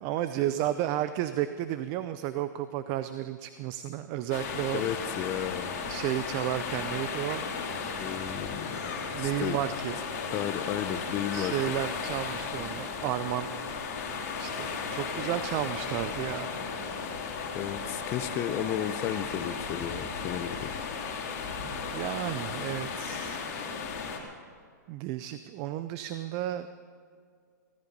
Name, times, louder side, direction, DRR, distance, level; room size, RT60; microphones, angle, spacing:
voice 1, 0.0-4.8 5.9-7.5 8.8-10.0 11.3-13.5 14.4-16.5 21.6-23.4 24.9-26.7, right 13 dB, 30° right, 12 dB, 0.5 m, -32 dB
sound 1, 4.3-24.2, left 5 dB, 50° left, 3.4 m, -35 dB
voice 2, 4.7-5.8 8.0-8.8 9.2-9.6 10.3-11.5 17.5-20.7, left 10 dB, 25° left, 12 dB, 0.7 m, -33 dB
17.0 x 14.5 x 5.3 m, 2.1 s
hypercardioid pair, 150°, 10 cm